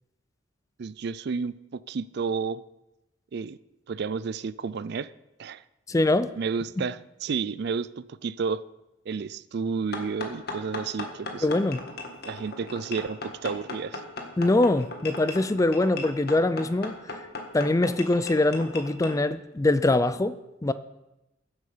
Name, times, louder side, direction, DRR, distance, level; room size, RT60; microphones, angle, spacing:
voice 1, 0.8-2.6 3.3-3.6 3.9-5.1 5.4-5.6 6.4-8.6 9.1-11.5 12.2-14.0, right 5 dB, 60° right, 17 dB, 0.4 m, -31 dB
voice 2, 5.9-6.3 11.4-11.8 14.4-16.9 17.5-20.7, left 2 dB, 15° left, 13 dB, 0.4 m, -23 dB
sound 1, 9.9-19.2, left 3 dB, 55° left, 1.7 m, -37 dB
14.5 x 8.2 x 5.0 m, 0.96 s
head